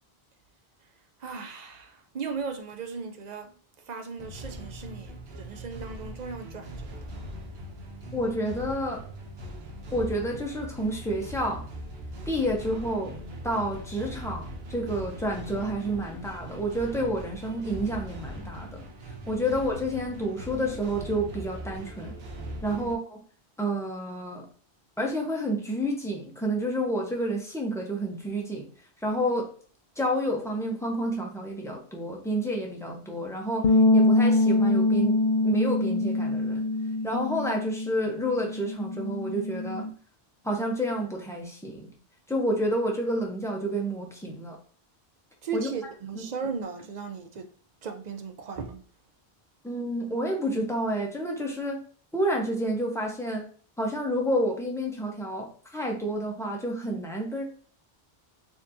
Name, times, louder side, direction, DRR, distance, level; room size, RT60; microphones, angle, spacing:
voice 1, 1.2-3.5 3.9-7.1 22.7-22.9 29.2-29.3 45.4-47.5 47.8-48.8, right 5 dB, 50° right, 0.6 m, -37 dB
sound 1, 4.2-23.0, right 1 dB, 80° right, 1.0 m, -40 dB
voice 2, 8.1-9.0 9.9-11.6 12.3-13.1 13.4-18.8 19.3-22.1 22.6-23.2 23.6-24.5 25.0-28.7 29.0-29.5 30.0-35.1 35.4-36.6 37.0-39.9 40.4-41.9 42.3-44.6 45.5-45.7 46.1-46.2 49.6-51.8 52.1-53.4 53.8-57.4, equal, 5° left, 0.9 m, -29 dB
sound 2, 33.6-39.9, left 2 dB, 50° left, 0.5 m, -24 dB
4.2 x 3.0 x 2.6 m
omnidirectional pair, 1.0 m